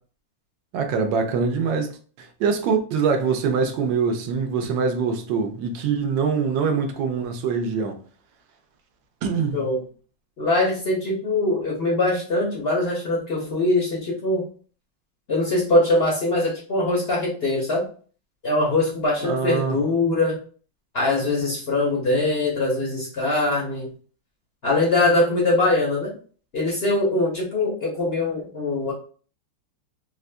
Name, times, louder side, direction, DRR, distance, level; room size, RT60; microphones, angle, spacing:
voice 1, 0.7-8.0 9.2-9.6 19.2-19.8, right 5 dB, 70° right, 1.2 m, -24 dB
voice 2, 10.4-14.5 15.3-17.8 18.4-20.4 20.9-23.9 24.6-26.1 26.5-28.9, left 2 dB, 50° left, 0.7 m, -22 dB
4.2 x 2.5 x 2.2 m
omnidirectional pair, 2.3 m